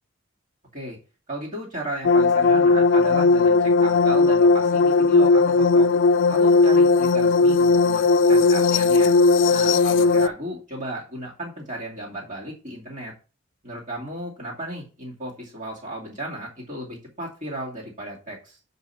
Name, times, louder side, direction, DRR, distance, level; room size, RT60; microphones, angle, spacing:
voice 1, 1.3-5.9 6.3-9.1 9.5-13.1 13.6-18.6, right 1 dB, 45° right, -5 dB, 2.4 m, -35 dB
sound 1, 2.0-10.3, left 3 dB, 85° left, 0.4 m, -17 dB
7.1 x 5.4 x 5.7 m, 0.35 s
head